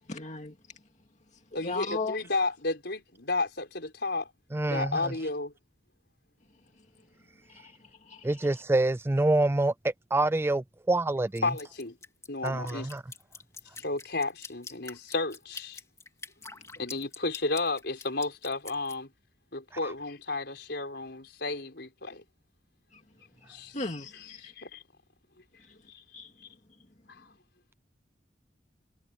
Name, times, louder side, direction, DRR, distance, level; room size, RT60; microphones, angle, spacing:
voice 1, 0.1-0.5 1.5-2.2 7.5-7.7 8.1-8.3 23.7-24.5 26.1-26.3, left 3 dB, 40° left, 2.3 m, -35 dB
voice 2, 1.5-4.3 4.7-5.5 11.4-12.0 12.3-12.9 13.8-15.8 16.8-19.1 19.5-22.3 23.5-23.8 24.1-24.8 25.9-26.0 27.1-27.3, left 3 dB, 60° left, 5.2 m, -32 dB
voice 3, 4.5-5.1 8.2-9.7 10.1-11.4 12.4-13.0, right 2 dB, 15° right, 0.3 m, -26 dB
Drip, 11.3-19.0, left 4 dB, 15° left, 3.3 m, -45 dB
head